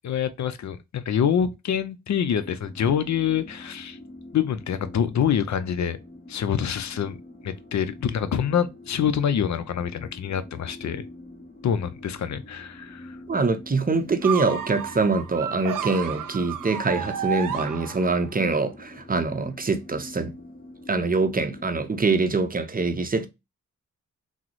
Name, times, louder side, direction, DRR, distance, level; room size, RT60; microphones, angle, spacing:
voice 1, 0.0-4.0 4.3-6.0 6.3-7.2 7.4-11.0 11.6-13.2, left 8 dB, 60° left, 0.5 m, -26 dB
sound 1, 2.4-21.9, left 1 dB, 30° left, 1.2 m, -45 dB
voice 2, 13.3-20.3 20.9-23.3, right 3 dB, 25° right, 0.6 m, -24 dB
sound 2, 14.2-18.4, right 8 dB, 80° right, 0.6 m, -32 dB
3.6 x 2.1 x 2.9 m
cardioid pair, 50°, 32 cm